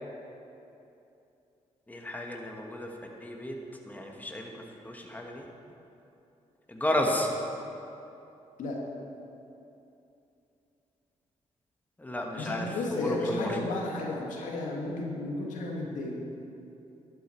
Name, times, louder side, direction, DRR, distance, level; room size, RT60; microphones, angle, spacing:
voice 1, 1.9-2.9 3.2-3.6 3.9-4.5 4.8-5.4 6.7-7.3 12.0-12.6 13.0-13.5, left 1 dB, 10° left, 1 dB, 1.5 m, -32 dB
voice 2, 12.3-16.2, left 2 dB, 80° left, -2 dB, 1.8 m, -33 dB
11.5 x 9.4 x 4.5 m, 2.8 s
supercardioid pair, 60°, 13 cm